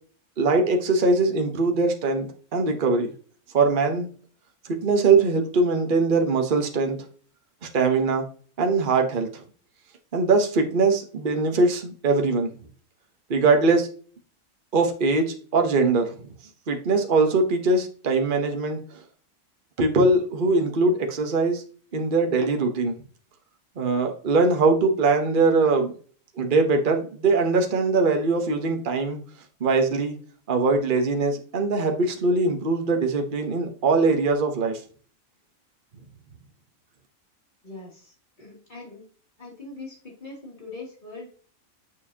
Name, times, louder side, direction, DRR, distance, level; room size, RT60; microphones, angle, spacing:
voice 1, 0.4-3.1 3.5-4.1 4.7-7.0 7.7-8.2 8.6-9.4 10.1-12.5 13.3-13.9 14.7-16.2 16.7-18.8 19.8-21.6 21.9-22.9 23.8-25.9 26.4-29.2 29.6-30.1 30.5-34.8, right 3 dB, 40° right, 4 dB, 1.1 m, -22 dB
voice 2, 37.6-39.0 39.4-41.3, left 3 dB, 35° left, -3 dB, 3.0 m, -41 dB
6.8 x 6.8 x 2.8 m, 0.42 s
omnidirectional pair, 1.4 m